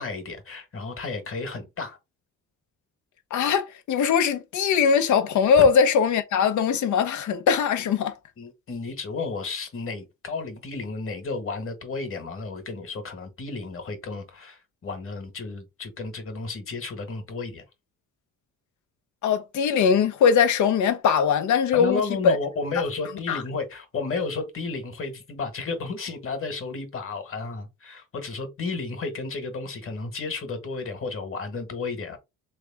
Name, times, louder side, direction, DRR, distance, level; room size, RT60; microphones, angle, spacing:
voice 1, 0.0-2.0 5.6-5.7 8.4-17.6 21.7-32.2, left 4 dB, 45° left, 1.5 m, -32 dB
voice 2, 3.3-8.1 19.2-22.4 23.3-23.4, left 6 dB, 75° left, 0.9 m, -21 dB
3.3 x 3.3 x 3.4 m
cardioid pair, 90°, 30 cm